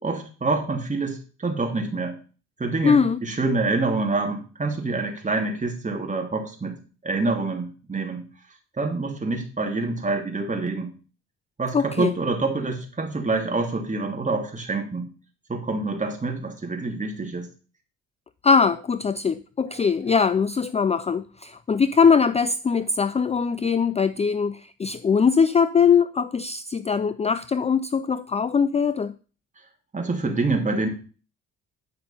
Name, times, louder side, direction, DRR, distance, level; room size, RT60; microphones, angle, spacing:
voice 1, 0.0-2.2 2.6-6.8 7.0-8.2 8.8-10.9 11.6-15.1 15.5-17.5 19.7-19.8 29.9-30.9, right 3 dB, 25° right, 3 dB, 2.7 m, -26 dB
voice 2, 2.8-3.2 11.7-12.1 18.4-29.1, left 6 dB, 20° left, 14 dB, 0.4 m, -21 dB
9.6 x 5.8 x 5.5 m, 0.36 s
cardioid pair, 90°, 30 cm